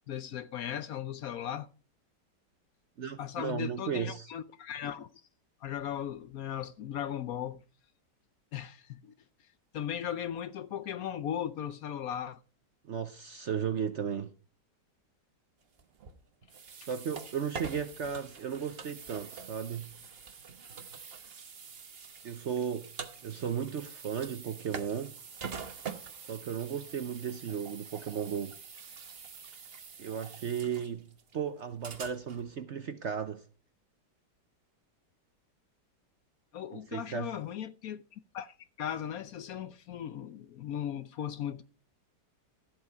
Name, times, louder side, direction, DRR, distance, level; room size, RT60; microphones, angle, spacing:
voice 1, 0.1-1.7 3.2-5.1 5.6-7.6 8.5-9.1 9.7-12.4 16.8-16.9 36.5-41.6, left 9 dB, 65° left, 1.0 m, -37 dB
voice 2, 3.0-4.3 12.8-14.3 16.9-19.9 22.2-22.9 23.2-25.2 26.3-28.6 30.0-33.4 36.7-37.3, right 7 dB, 55° right, 0.8 m, -35 dB
sound 1, 15.8-32.6, right 6 dB, 40° right, 1.1 m, -45 dB
13.5 x 7.9 x 4.6 m
omnidirectional pair, 1.9 m